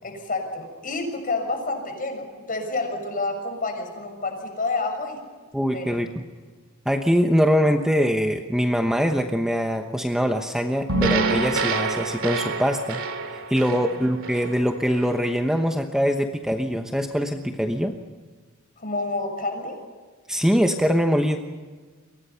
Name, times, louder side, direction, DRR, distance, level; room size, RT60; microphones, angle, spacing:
voice 1, 0.0-5.2 5.7-6.0 13.7-14.0 18.8-19.8, left 3 dB, 40° left, 4 dB, 6.5 m, -29 dB
voice 2, 5.5-6.2 6.8-13.0 13.3-17.9 20.3-21.4, equal, 5° right, 4 dB, 1.0 m, -23 dB
sound 1, 10.9-15.2, right 3 dB, 65° right, 2.6 m, -27 dB
29.5 x 23.5 x 5.7 m, 1.4 s
head